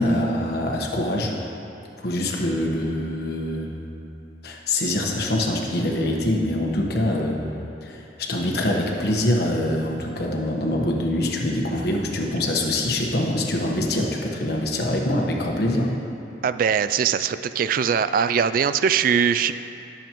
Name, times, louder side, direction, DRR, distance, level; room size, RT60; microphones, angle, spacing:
voice 1, 0.0-1.3 2.0-3.7 4.4-7.4 7.8-15.9, left 1 dB, 60° left, 0 dB, 1.3 m, -24 dB
voice 2, 16.4-19.5, right 7 dB, 50° right, 12 dB, 0.3 m, -21 dB
19.5 x 7.2 x 3.1 m, 2.7 s
head